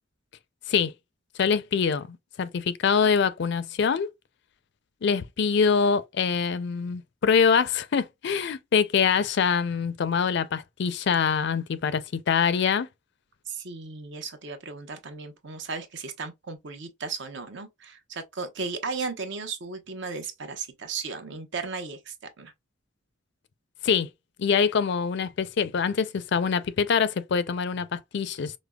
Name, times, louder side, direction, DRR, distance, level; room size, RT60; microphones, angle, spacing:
voice 1, 1.4-4.1 5.0-12.9 23.8-24.1 24.4-28.5, left 6 dB, 60° left, 0.4 m, -24 dB
voice 2, 13.5-22.5, right 4 dB, 60° right, 0.8 m, -35 dB
5.0 x 2.1 x 2.2 m
head